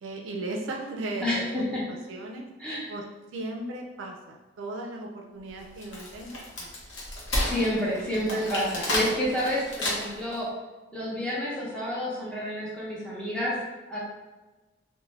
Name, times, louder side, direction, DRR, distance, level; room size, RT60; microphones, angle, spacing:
voice 1, 0.0-2.5 2.9-3.0 3.3-6.7, right 2 dB, 70° right, 1 dB, 0.4 m, -37 dB
voice 2, 1.2-1.8 2.6-2.9 7.4-10.5 10.9-13.5 13.9-14.0, equal, 5° left, -7 dB, 0.6 m, -29 dB
Wood, 5.6-10.3, left 1 dB, 65° left, 0.7 m, -31 dB
2.4 x 2.1 x 3.2 m, 1.2 s
head